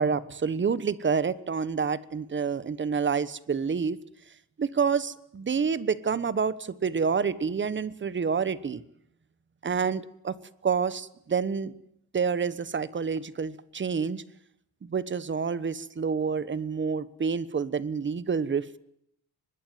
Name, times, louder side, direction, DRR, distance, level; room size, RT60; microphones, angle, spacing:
voice 1, 0.0-4.0 4.6-8.8 9.6-10.4 10.6-11.7 12.1-14.2 14.8-18.8, right 6 dB, 30° right, 16 dB, 1.2 m, -28 dB
24.0 x 21.5 x 9.2 m, 0.73 s
cardioid pair, 140°, 38 cm